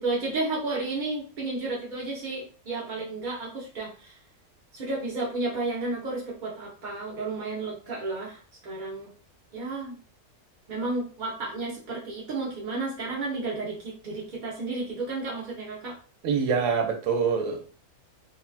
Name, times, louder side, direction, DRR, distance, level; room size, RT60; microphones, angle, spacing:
voice 1, 0.0-4.1 4.7-9.1 9.5-10.0 10.7-16.0, right 3 dB, 50° right, -4 dB, 0.5 m, -32 dB
voice 2, 16.2-17.6, right 6 dB, 70° right, 3 dB, 1.0 m, -25 dB
3.0 x 2.2 x 2.4 m, 0.38 s
omnidirectional pair, 1.5 m